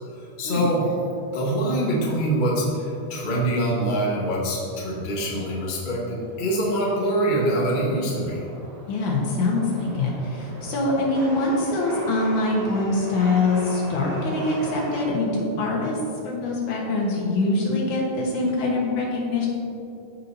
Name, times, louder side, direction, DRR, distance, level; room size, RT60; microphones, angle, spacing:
voice 1, 0.4-0.8 1.3-8.4, right 1 dB, 35° left, -4 dB, 0.7 m, -24 dB
Chatter / Subway metro underground, 0.8-15.1, right 1 dB, 85° right, 3.2 m, -40 dB
voice 2, 8.9-16.0 16.2-19.5, left 2 dB, 85° left, -3 dB, 2.8 m, -24 dB
14.5 x 5.6 x 2.8 m, 2.7 s
omnidirectional pair, 3.4 m